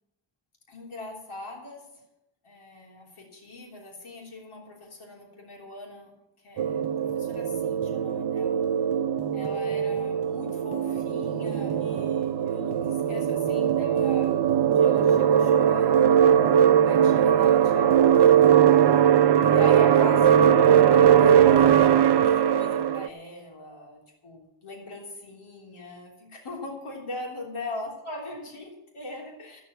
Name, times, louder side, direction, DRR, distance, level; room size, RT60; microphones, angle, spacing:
voice 1, 0.7-1.9 2.4-6.1 6.4-8.6 9.3-16.4 16.6-18.5 19.5-29.6, left 2 dB, 80° left, -1 dB, 3.4 m, -41 dB
sound 1, 6.6-23.1, right 9 dB, 55° right, 0.6 m, -20 dB
13.5 x 6.9 x 8.9 m, 0.92 s
cardioid pair, 65°, 49 cm